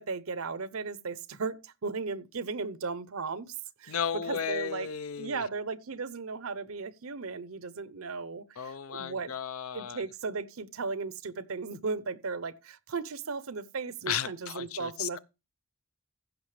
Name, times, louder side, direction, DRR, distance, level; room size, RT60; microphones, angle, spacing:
voice 1, 0.0-4.0 4.3-4.9 5.2-9.3 9.7-15.2, right 4 dB, 75° right, 0.8 m, -36 dB
voice 2, 3.9-5.4 8.6-10.0 14.1-15.2, left 8 dB, 85° left, 0.7 m, -34 dB
15.5 x 6.0 x 3.3 m
head